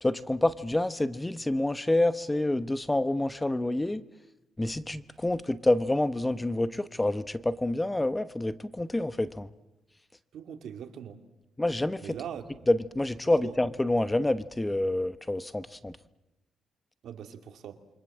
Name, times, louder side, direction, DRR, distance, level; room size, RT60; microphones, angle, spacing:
voice 1, 0.0-4.0 4.6-9.5 11.6-12.0 12.7-16.0, left 1 dB, 15° left, 14 dB, 1.0 m, -27 dB
voice 2, 10.3-11.2 12.0-12.4 13.4-13.6 17.0-17.8, right 9 dB, 75° right, 7 dB, 2.7 m, -41 dB
28.5 x 24.5 x 7.5 m, 0.97 s
cardioid pair, 95°, 0 cm